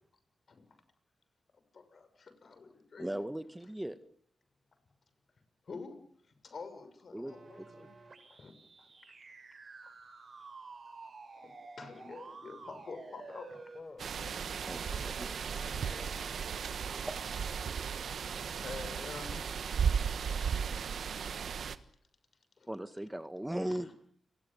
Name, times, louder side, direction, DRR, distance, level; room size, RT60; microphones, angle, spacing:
voice 1, 1.7-3.1 5.7-6.0 6.4-7.9 8.3-8.5 8.8-8.9 9.8-9.9 11.3-11.5 11.8-13.7 18.4-19.6 22.6-22.7 23.7-23.8, left 4 dB, 60° left, 10 dB, 6.5 m, -47 dB
voice 2, 3.0-4.0 7.1-7.9 14.6-15.4 17.0-17.2 22.7-23.9, right 1 dB, 10° right, 11 dB, 1.6 m, -38 dB
sound 1, 7.3-13.8, right 4 dB, 55° right, 6.9 m, -51 dB
voice 3, 13.7-16.6, left 2 dB, 40° left, 13 dB, 4.9 m, -52 dB
sound 2, 14.0-21.8, right 7 dB, 75° right, 1.4 m, -35 dB
30.0 x 19.5 x 7.2 m, 0.63 s
supercardioid pair, 45°, 0 cm